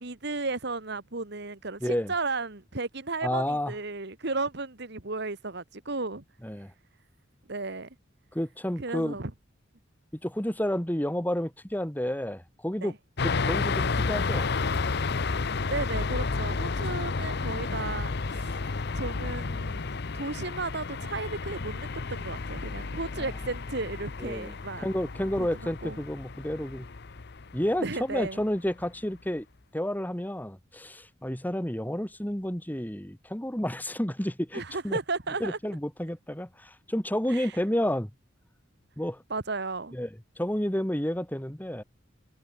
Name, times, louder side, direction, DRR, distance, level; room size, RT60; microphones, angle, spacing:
voice 1, 0.0-6.2 7.5-7.9 8.8-9.3 12.8-12.9 15.7-18.6 18.9-24.9 25.4-26.0 27.8-28.4 34.5-35.6 37.3-37.6 39.3-40.0, right 3 dB, 60° right, 1.9 m, -34 dB
voice 2, 1.8-2.1 3.2-3.7 6.4-6.7 8.3-9.2 10.2-12.9 13.2-14.5 18.5-18.6 23.2-23.3 24.2-24.5 24.8-26.9 27.5-29.5 29.7-35.0 35.4-38.1 39.0-39.2 39.9-40.1 40.4-41.8, equal, 10° left, 1.9 m, -30 dB
sound 1, 13.2-28.4 28.8-28.9, left 4 dB, 60° left, 0.8 m, -31 dB
head